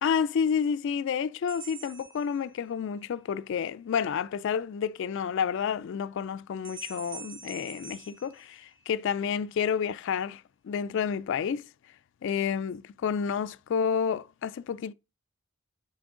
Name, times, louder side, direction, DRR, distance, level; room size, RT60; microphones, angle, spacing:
voice 1, 0.0-11.7 12.2-14.9, left 7 dB, 55° left, 0.3 m, -30 dB
sound 1, 1.5-3.0 6.6-9.2, right 5 dB, 60° right, 2.5 m, -46 dB
7.7 x 6.1 x 3.7 m
head